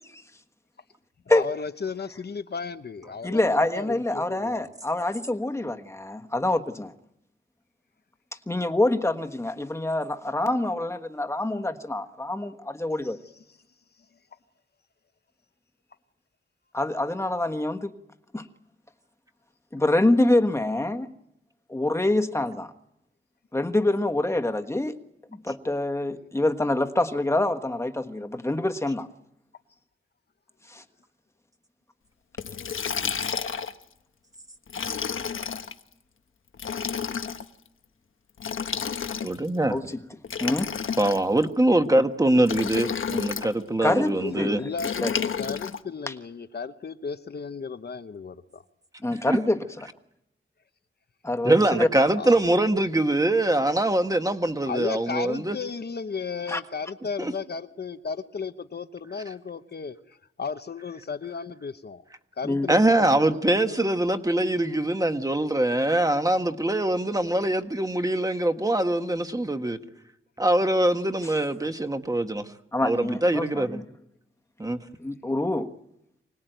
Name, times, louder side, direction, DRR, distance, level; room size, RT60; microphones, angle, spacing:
voice 1, 1.3-4.7 13.0-13.1 44.2-48.6 52.2-52.4 54.6-62.0 62.4-63.9, left 5 dB, 50° left, 1.0 m, -35 dB
voice 2, 3.2-6.9 8.5-13.2 16.7-17.9 18.3-18.5 19.7-21.1 21.7-22.7 23.5-24.9 25.4-29.1 30.7-30.8 39.7-40.0 40.4-40.7 43.8-44.7 45.0-45.1 46.1-46.2 49.0-49.6 51.2-51.9 56.5-56.6 62.4-62.7 71.2-71.3 72.7-73.8 75.0-75.7, left 2 dB, 15° left, 1.4 m, -26 dB
Liquid, 32.4-33.8 34.7-35.7 36.5-37.4 38.4-39.5 40.2-41.4 42.4-43.5 44.8-45.8, left 6 dB, 75° left, 1.2 m, -30 dB
voice 3, 39.2-39.8 41.0-44.6 49.3-49.4 51.4-55.6 57.2-57.3 62.7-69.8 70.4-72.4 72.8-73.8 74.6-74.8, right 1 dB, 15° right, 1.4 m, -23 dB
25.5 x 20.0 x 9.2 m
wide cardioid pair, 130°, 21 cm